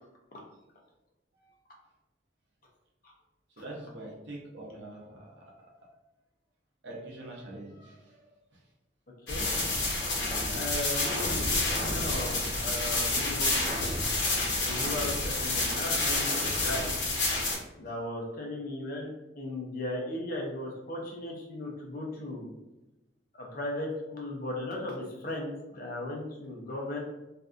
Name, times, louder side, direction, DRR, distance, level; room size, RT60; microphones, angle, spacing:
voice 1, 3.6-5.9 6.8-8.3, right 1 dB, 65° right, -2 dB, 0.7 m, -45 dB
sound 1, 9.3-17.5, left 2 dB, 65° left, 0.9 m, -29 dB
voice 2, 10.5-13.6 14.6-16.9 17.8-19.1 19.4-22.5 23.3-27.0, left 1 dB, 50° left, -1 dB, 0.6 m, -36 dB
2.6 x 2.2 x 2.4 m, 0.97 s
head